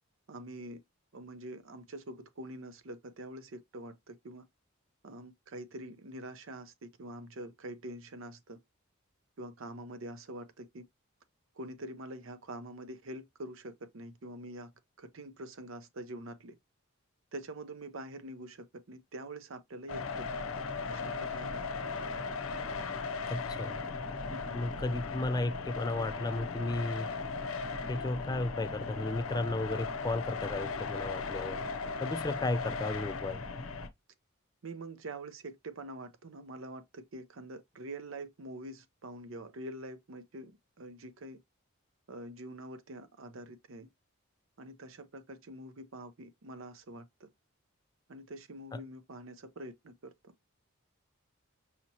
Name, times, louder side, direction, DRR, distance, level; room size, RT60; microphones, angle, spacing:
voice 1, 0.3-0.8 1.1-4.4 5.0-8.6 9.4-10.8 11.6-14.7 15.0-16.6 17.3-21.7 24.3-24.6 34.6-41.4 42.1-43.9 44.6-47.3 48.1-50.3, right 1 dB, 65° right, 0.7 m, -45 dB
sound 1, 19.9-33.9, left 4 dB, 75° left, 0.7 m, -37 dB
voice 2, 23.3-23.8 24.5-27.1 27.9-31.6 32.0-33.4 48.7-48.8, left 2 dB, 20° left, 0.3 m, -34 dB
5.6 x 2.9 x 2.7 m
head